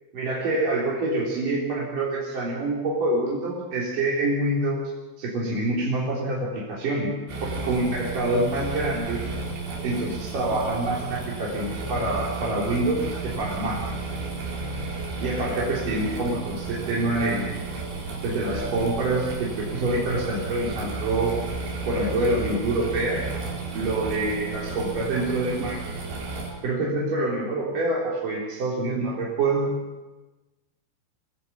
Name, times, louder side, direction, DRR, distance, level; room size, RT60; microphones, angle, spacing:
voice 1, 0.1-4.8 5.2-7.1 7.4-9.2 9.8-13.8 15.2-17.5 18.2-21.4 21.9-23.3 23.7-25.9 26.6-29.7, right 2 dB, 50° right, -5 dB, 5.0 m, -26 dB
sound 1, 7.3-26.5, right 3 dB, 85° right, 7.6 m, -33 dB
26.5 x 17.0 x 8.6 m, 1.1 s
omnidirectional pair, 5.3 m